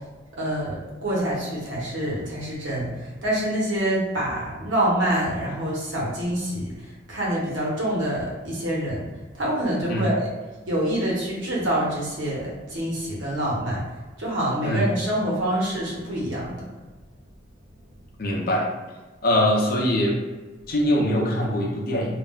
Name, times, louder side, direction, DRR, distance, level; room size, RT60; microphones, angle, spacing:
voice 1, 0.3-6.7 7.1-9.1 9.3-10.3 10.7-13.8 14.2-16.7, right 1 dB, 85° right, -5 dB, 1.0 m, -26 dB
voice 2, 18.2-18.7 19.2-20.2 20.7-22.1, left 1 dB, 50° left, -1 dB, 0.5 m, -22 dB
2.4 x 2.0 x 3.6 m, 1.2 s
head